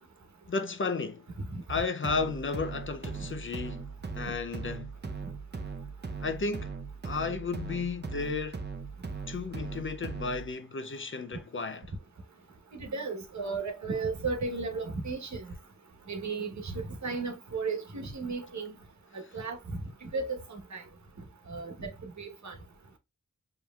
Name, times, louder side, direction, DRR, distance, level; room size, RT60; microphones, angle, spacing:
voice 1, 0.5-1.3 1.7-3.9 4.1-4.9 6.2-6.7 7.0-8.7 9.3-11.8, left 4 dB, 40° left, 0.5 m, -33 dB
sound 1, 2.0-10.5, right 4 dB, 35° right, 0.7 m, -39 dB
voice 2, 12.7-15.5 16.1-18.7 19.1-20.8 21.5-21.9 22.2-22.6, right 4 dB, 65° right, 1.2 m, -35 dB
5.2 x 3.1 x 2.3 m
cardioid pair, 65°, 30 cm